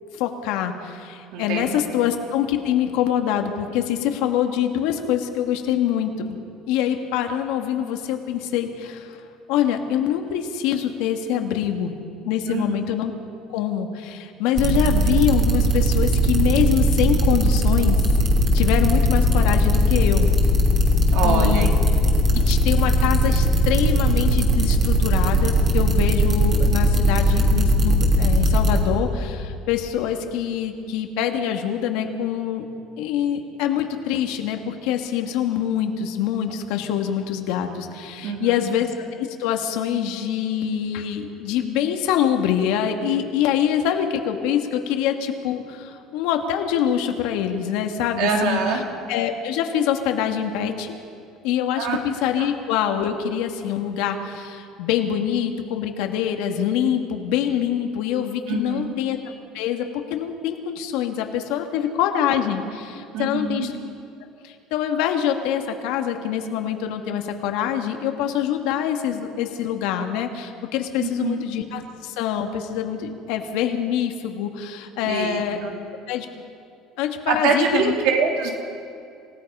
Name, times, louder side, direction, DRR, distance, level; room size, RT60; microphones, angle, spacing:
voice 1, 0.1-6.4 6.7-9.2 9.5-11.9 12.2-13.1 13.5-18.0 18.5-20.3 21.2-21.7 22.3-32.7 33.0-48.6 49.1-50.9 51.4-59.2 59.5-63.7 64.4-75.6 76.1-76.3 77.0-78.0, left 9 dB, 75° left, 4 dB, 2.0 m, -25 dB
voice 2, 1.3-1.7 12.5-12.7 21.1-21.7 38.2-38.7 48.2-48.8 51.8-52.0 52.4-52.5 58.5-58.9 63.1-63.7 71.0-71.4 75.0-75.7 77.3-78.5, right 5 dB, 70° right, 2 dB, 3.1 m, -24 dB
sound 1, 14.6-28.8, right 1 dB, 25° right, 2.9 m, -19 dB
27.5 x 17.0 x 5.6 m, 2.5 s
cardioid pair, 170°, 0 cm